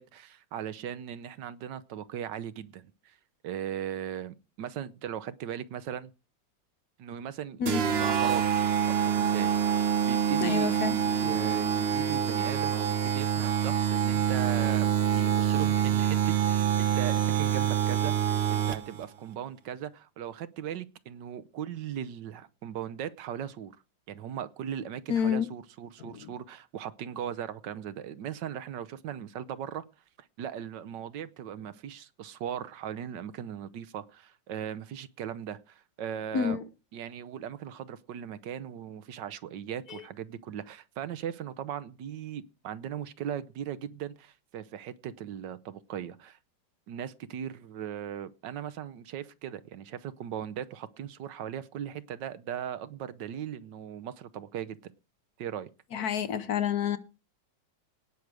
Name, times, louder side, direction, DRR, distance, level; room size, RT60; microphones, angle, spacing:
voice 1, 0.0-3.2 3.4-6.1 7.0-8.4 8.9-23.7 24.1-29.8 30.2-36.6 36.9-46.4 46.9-54.9 55.4-55.7, right 9 dB, 75° right, 1.4 m, -38 dB
sound 1, 7.7-19.0, right 9 dB, 45° right, 0.9 m, -26 dB
voice 2, 10.4-11.4 25.1-25.5 26.0-26.3 36.3-36.6 39.9-40.0 55.9-57.0, left 8 dB, 60° left, 1.3 m, -29 dB
18.0 x 6.5 x 4.8 m
omnidirectional pair, 2.0 m